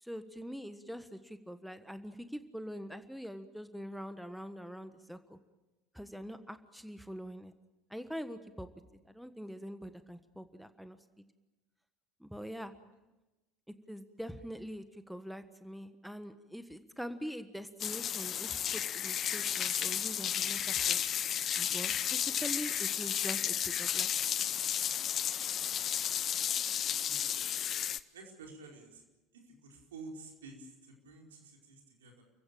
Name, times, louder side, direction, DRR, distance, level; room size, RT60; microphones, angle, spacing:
voice 1, 0.0-5.4 5.9-7.5 7.9-8.7 9.1-11.0 12.2-12.7 13.9-21.0 21.6-24.1, equal, ahead, 11 dB, 1.4 m, -44 dB
sound 1, 17.8-28.0, left 9 dB, 40° left, 0.8 m, -33 dB
voice 2, 26.8-27.5 28.1-29.0 29.6-32.2, right 3 dB, 75° right, 1 dB, 4.7 m, -51 dB
29.5 x 16.0 x 9.0 m, 1.1 s
figure-of-eight pair, 65°, 0 cm